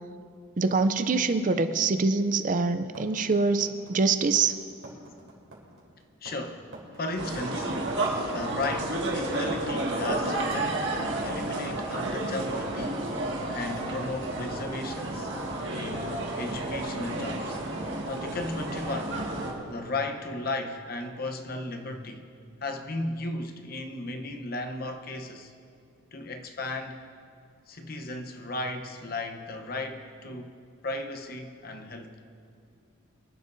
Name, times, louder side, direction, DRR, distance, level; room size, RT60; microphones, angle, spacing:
voice 1, 0.6-4.5, right 4 dB, 40° right, 10 dB, 0.4 m, -24 dB
sound 1, 2.9-14.0, right 2 dB, 85° right, 3.6 m, -47 dB
voice 2, 6.2-6.7 6.9-7.9 8.3-13.1 13.5-15.3 15.6-17.6 18.1-19.2 19.7-22.3 22.6-25.5 26.1-27.0 27.7-30.5 30.8-32.1, left 2 dB, 45° left, 5 dB, 0.9 m, -35 dB
sound 2, 7.2-19.5, right 2 dB, 60° right, 1.9 m, -31 dB
25.0 x 11.0 x 2.7 m, 2.3 s
head